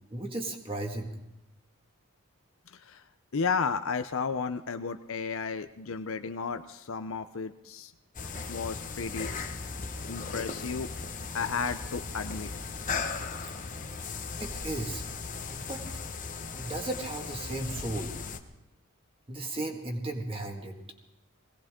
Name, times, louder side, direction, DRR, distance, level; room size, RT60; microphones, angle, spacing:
voice 1, 0.1-1.1 14.1-15.0 15.5-15.8 16.5-18.1 19.3-20.8, right 2 dB, 25° right, 2 dB, 1.8 m, -35 dB
voice 2, 2.7-3.0 3.3-7.9 8.5-9.3 10.1-10.9 11.3-12.5, left 5 dB, 65° left, 9 dB, 0.6 m, -33 dB
sound 1, 8.1-18.4, left 4 dB, 35° left, 1.0 m, -37 dB
21.0 x 18.0 x 3.7 m, 0.93 s
head